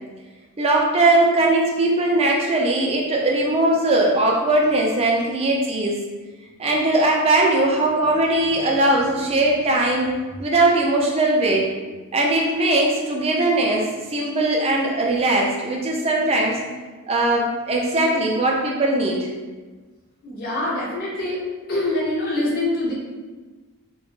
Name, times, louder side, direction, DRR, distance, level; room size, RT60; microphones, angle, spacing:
voice 1, 0.6-6.0 6.6-10.1 10.4-11.7 12.1-16.6 17.1-19.3, right 2 dB, 30° right, -2 dB, 0.4 m, -20 dB
voice 2, 20.2-21.4 21.7-22.9, left 2 dB, 45° left, -5 dB, 0.5 m, -24 dB
2.2 x 2.0 x 3.0 m, 1.3 s
head